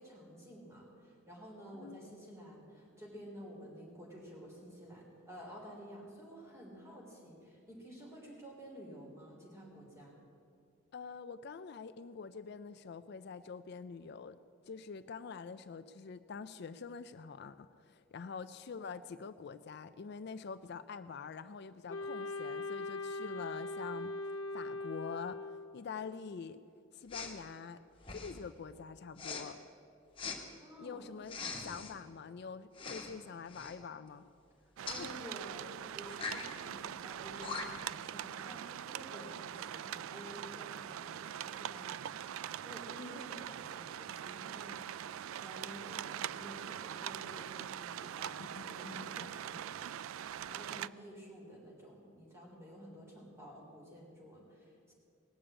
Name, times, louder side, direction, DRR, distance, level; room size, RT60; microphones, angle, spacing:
voice 1, 0.0-10.1 30.6-31.1 34.8-35.6 35.9-54.9, equal, 15° right, -3 dB, 3.6 m, -51 dB
voice 2, 10.9-14.4 14.7-24.1 24.5-25.4 25.7-26.6 26.9-27.8 28.1-29.6 30.8-34.3 35.0-35.1 43.0-43.2 48.6-49.1, left 5 dB, 55° left, 12 dB, 0.4 m, -45 dB
Wind instrument woodwind instrument, 21.9-25.9, left 2 dB, 75° left, 0.8 m, -40 dB
Respiratory sounds, 27.1-27.4 28.0-28.4 29.2-29.4 30.2-30.4 31.3-31.9 32.7-33.1 33.5-33.8 34.9-35.1 36.1-36.5 37.1-37.2 37.4-37.9, left 5 dB, 25° left, 1.5 m, -42 dB
sound 1, 34.8-50.9, right 10 dB, 80° right, 0.3 m, -43 dB
18.5 x 7.0 x 8.7 m, 2.4 s
head